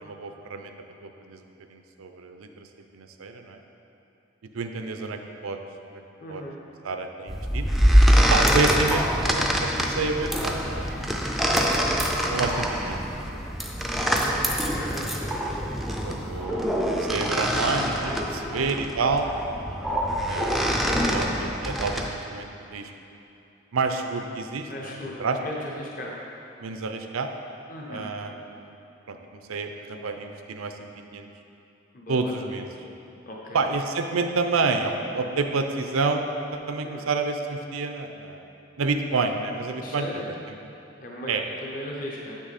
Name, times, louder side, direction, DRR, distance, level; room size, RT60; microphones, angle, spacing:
voice 1, 0.0-0.7 1.0-1.4 1.7-2.7 2.9-3.6 4.5-5.6 5.9-6.0 6.3-6.4 6.8-7.6 8.3-11.3 12.3-13.4 16.0-16.7 17.0-19.3 20.2-22.9 23.7-25.4 26.6-27.3 27.9-28.7 29.1-31.3 32.1-32.7 33.5-38.5 38.8-40.2 41.3-41.4, right 4 dB, 90° right, 6 dB, 0.6 m, -29 dB
voice 2, 6.2-6.6 14.7-15.3 18.4-18.8 24.7-26.1 27.7-28.1 31.9-32.3 33.2-33.6 36.8-37.0 39.8-40.3 41.0-42.4, left 1 dB, 40° left, -3 dB, 0.8 m, -37 dB
sound 1, 7.3-22.1, equal, ahead, 0.4 m, -24 dB
8.2 x 6.2 x 4.1 m, 2.8 s
head